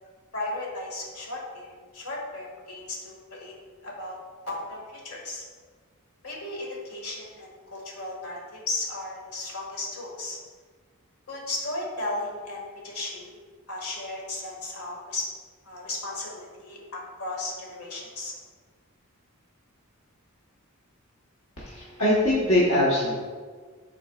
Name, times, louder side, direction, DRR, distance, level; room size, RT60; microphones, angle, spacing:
voice 1, 0.3-3.5 3.8-4.2 4.4-5.4 6.2-10.4 11.3-13.3 13.7-15.2 15.6-18.3, left 2 dB, 85° left, -3 dB, 1.8 m, -35 dB
voice 2, 21.6-23.1, left 1 dB, 65° left, -7 dB, 1.2 m, -22 dB
9.9 x 4.2 x 2.4 m, 1.5 s
head